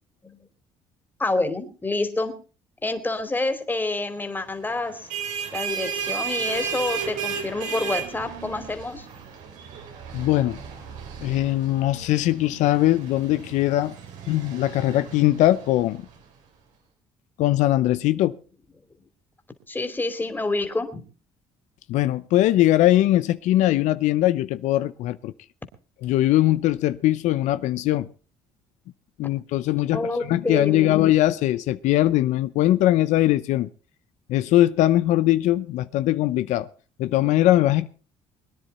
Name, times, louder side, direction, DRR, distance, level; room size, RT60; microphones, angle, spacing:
voice 1, 1.2-2.3 2.8-5.1 5.5-9.1 19.7-21.0 29.9-31.0, left 2 dB, 15° left, 3.0 m, -28 dB
sound 1, 4.8-16.2, right 7 dB, 85° right, 4.0 m, -34 dB
voice 2, 10.1-10.6 11.2-13.9 14.3-16.0 17.4-18.4 21.9-25.3 26.0-28.1 29.2-33.7 34.3-36.7 37.0-37.9, left 14 dB, 75° left, 0.7 m, -21 dB
22.0 x 10.0 x 4.2 m
supercardioid pair, 85°, 12 cm